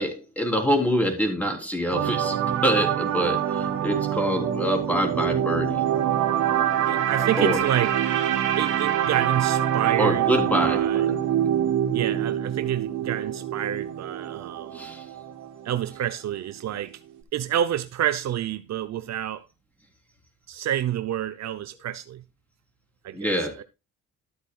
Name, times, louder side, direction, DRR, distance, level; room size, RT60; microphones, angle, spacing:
voice 1, 0.0-5.8 7.4-7.6 10.0-11.2 14.7-15.0 23.1-23.6, equal, 5° left, 3.6 m, -25 dB
sound 1, 1.9-16.1 16.4-16.6, right 10 dB, 85° right, 2.1 m, -25 dB
voice 2, 6.9-7.9 8.6-10.3 10.6-11.1 11.9-14.9 15.6-17.0 17.3-19.5 20.5-22.2 23.0-23.6, right 11 dB, 65° right, 0.7 m, -28 dB
13.0 x 8.3 x 2.3 m
cardioid pair, 90°, 30 cm